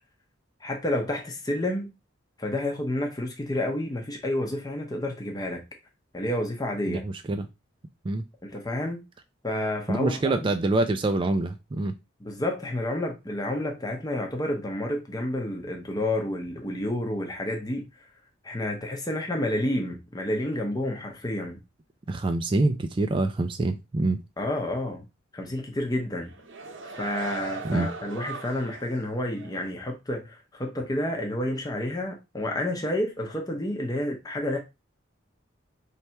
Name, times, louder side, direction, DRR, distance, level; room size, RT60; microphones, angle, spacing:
voice 1, 0.6-1.9 2.4-5.6 6.1-7.0 8.4-9.0 9.4-10.5 12.2-17.9 18.4-21.6 24.4-25.0 25.3-26.3 26.9-34.6, left 1 dB, 20° left, 0.8 m, -30 dB
voice 2, 6.9-7.5 8.0-8.2 9.9-11.9 22.1-24.2 27.6-27.9, right 2 dB, 25° right, 0.3 m, -25 dB
sound 1, 26.2-29.0 29.4-29.5, right 3 dB, 70° right, 0.7 m, -38 dB
3.3 x 2.8 x 4.4 m
head